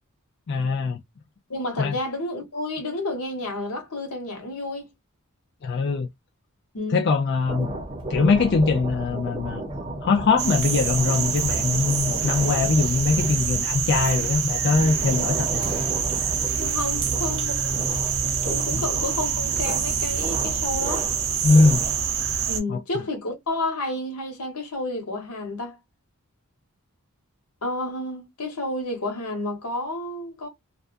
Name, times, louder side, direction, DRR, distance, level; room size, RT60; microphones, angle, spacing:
voice 1, 0.5-1.0 1.8-1.9 5.6-6.1 6.9-7.7 8.1-9.6 10.0-15.7 18.7-18.8 21.4-21.8 22.7-22.8, left 4 dB, 50° left, 0.4 m, -22 dB
voice 2, 1.5-4.9 6.7-7.1 16.6-17.7 18.2-21.1 22.5-25.8 27.6-30.5, left 2 dB, 80° left, 1.1 m, -30 dB
sound 1, 7.5-22.2, right 1 dB, 20° right, 0.7 m, -34 dB
sound 2, 10.4-22.6, right 7 dB, 65° right, 0.6 m, -26 dB
2.4 x 2.2 x 2.4 m
head